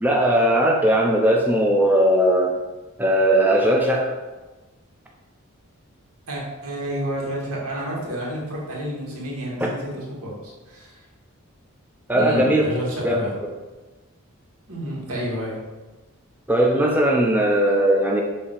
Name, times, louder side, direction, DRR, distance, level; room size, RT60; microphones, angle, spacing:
voice 1, 0.0-2.6 3.0-4.2 9.6-9.7 12.1-12.6 13.0-13.2 16.5-18.2, right 1 dB, 10° right, -1 dB, 0.5 m, -18 dB
voice 2, 6.3-11.0 12.1-13.3 14.7-15.6, equal, 90° right, -4 dB, 1.9 m, -30 dB
7.4 x 2.8 x 4.6 m, 1.2 s
head